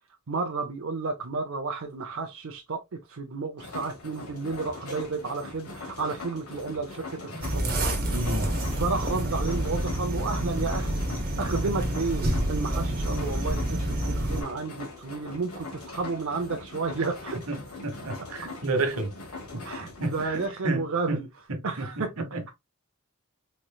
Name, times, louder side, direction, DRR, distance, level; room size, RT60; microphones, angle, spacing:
voice 1, 0.3-7.8 8.8-11.0 11.4-17.5 19.6-21.3 21.6-22.5, right 4 dB, 65° right, 0.6 m, -32 dB
sound 1, 3.6-20.5, left 3 dB, 80° left, 1.4 m, -42 dB
sound 2, 7.4-14.4, right 1 dB, 45° right, 1.2 m, -28 dB
voice 2, 8.1-8.5 17.5-19.2 19.5-21.2 21.5-21.9 22.3-22.5, right 2 dB, 80° right, 1.2 m, -31 dB
4.2 x 3.1 x 2.3 m
head